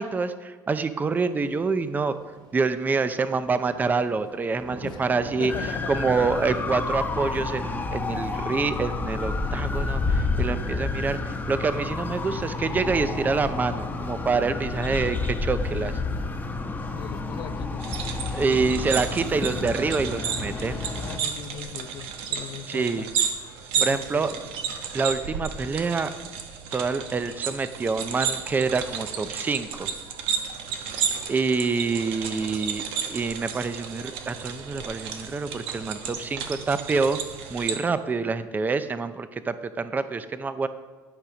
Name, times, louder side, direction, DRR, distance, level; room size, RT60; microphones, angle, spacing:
voice 1, 0.0-2.2 2.5-5.5 5.9-15.9 18.3-20.8 22.7-23.1 23.8-24.3 24.9-26.1 26.7-29.9 31.3-37.2 37.5-40.7, right 4 dB, 20° right, 12 dB, 0.5 m, -26 dB
Thunder / Rain, 1.1-6.4, right 2 dB, 50° right, 1.8 m, -45 dB
voice 2, 4.8-6.0 16.9-17.9 21.0-23.1 23.7-24.4, left 8 dB, 55° left, 9 dB, 0.8 m, -39 dB
sound 1, 5.5-21.2, left 3 dB, 20° left, 1.0 m, -30 dB
sound 2, 17.8-37.8, right 7 dB, 80° right, 1.2 m, -32 dB
12.0 x 4.9 x 6.0 m, 1.4 s
cardioid pair, 120°, 9 cm